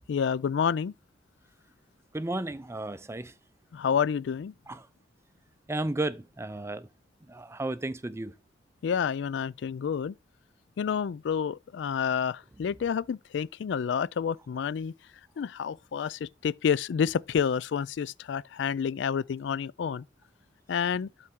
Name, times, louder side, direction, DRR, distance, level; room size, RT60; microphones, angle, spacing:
voice 1, 0.1-0.9 3.7-4.5 8.8-10.1 10.8-14.9 15.4-20.0 20.7-21.1, left 7 dB, 70° left, 0.3 m, -29 dB
voice 2, 2.1-3.3 4.7-4.9 5.7-6.9 7.3-8.3, right 2 dB, 15° right, 0.5 m, -33 dB
12.0 x 4.1 x 3.7 m
head